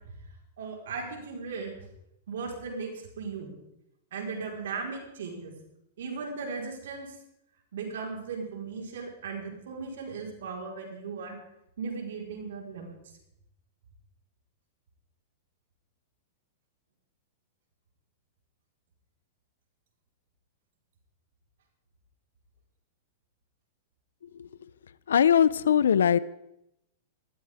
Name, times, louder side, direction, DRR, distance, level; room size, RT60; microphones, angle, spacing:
voice 1, 0.6-1.7 2.3-2.9 3.2-3.5 4.1-5.5 6.0-7.1 7.7-11.4 11.8-12.9, right 4 dB, 75° right, 1 dB, 4.4 m, -37 dB
voice 2, 25.1-26.2, left 8 dB, 85° left, 19 dB, 0.6 m, -21 dB
19.5 x 13.5 x 3.6 m, 0.82 s
hypercardioid pair, 120°, 0 cm